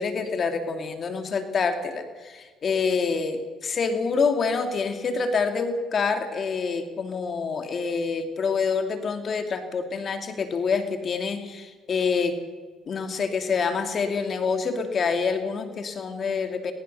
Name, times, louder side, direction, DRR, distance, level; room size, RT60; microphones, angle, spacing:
voice 1, 0.0-12.4 12.9-16.7, left 5 dB, 50° left, 7 dB, 2.6 m, -27 dB
21.5 x 20.5 x 6.8 m, 1.4 s
hypercardioid pair, 60°, 0 cm